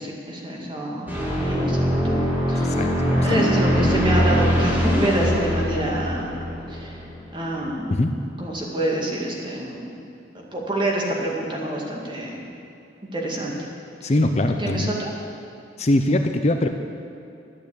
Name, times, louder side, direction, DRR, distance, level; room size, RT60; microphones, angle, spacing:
voice 1, 0.0-2.2 2.5-6.4 6.7-7.0 7.3-8.0 8.4-9.8 10.3-12.4 13.1-13.5 14.5-15.1, right 1 dB, 25° right, -2 dB, 2.2 m, -27 dB
sound 1, 1.1-7.7, equal, 10° right, 2.5 m, -22 dB
voice 2, 3.1-3.5 3.8-3.9 7.9-8.1 14.0-14.9 15.8-16.7, left 1 dB, 40° left, 6 dB, 0.6 m, -21 dB
12.0 x 9.1 x 8.4 m, 2.7 s
head